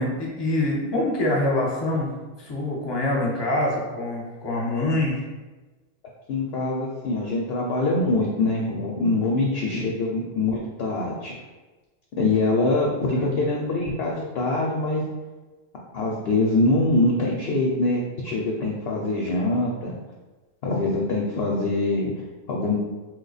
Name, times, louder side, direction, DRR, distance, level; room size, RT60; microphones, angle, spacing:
voice 1, 0.0-2.1 2.4-5.2 13.1-13.3, left 1 dB, 25° left, -4 dB, 0.6 m, -25 dB
voice 2, 6.3-11.3 12.2-15.0 15.9-20.0 20.6-22.8, left 2 dB, 65° left, -2 dB, 0.7 m, -24 dB
3.1 x 2.2 x 3.9 m, 1.2 s
omnidirectional pair, 1.4 m